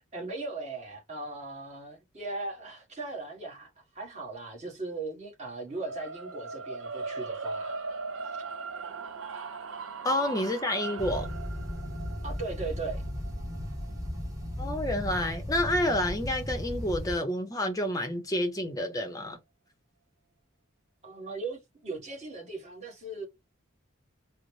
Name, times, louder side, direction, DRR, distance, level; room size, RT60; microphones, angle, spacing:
voice 1, 0.1-7.8 8.2-8.4 12.2-13.0 21.0-23.3, right 3 dB, 30° right, 1.2 m, -38 dB
sound 1, 5.7-15.9, right 4 dB, 75° right, 0.6 m, -39 dB
voice 2, 10.0-11.3 14.6-19.4, left 1 dB, 15° left, 0.6 m, -29 dB
sound 2, 11.0-17.1, left 1 dB, 15° right, 0.9 m, -36 dB
3.9 x 2.0 x 3.1 m
head